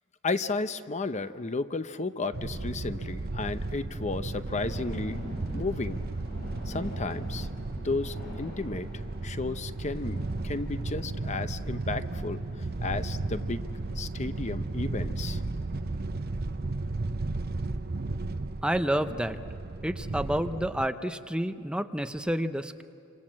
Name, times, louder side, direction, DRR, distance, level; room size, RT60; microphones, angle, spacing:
voice 1, 0.2-5.2 5.5-6.0 6.7-7.5 7.8-8.9 9.2-12.4 12.8-13.6 14.0-15.4, left 3 dB, 35° left, 11 dB, 0.7 m, -33 dB
sound 1, 2.3-20.9, right 2 dB, 50° right, 0.7 m, -34 dB
sound 2, 4.5-19.4, left 1 dB, 50° left, 8.0 m, -49 dB
voice 2, 18.6-19.4 19.8-22.8, right 1 dB, 5° right, 8 dB, 0.8 m, -29 dB
29.0 x 26.5 x 7.5 m, 2.7 s
head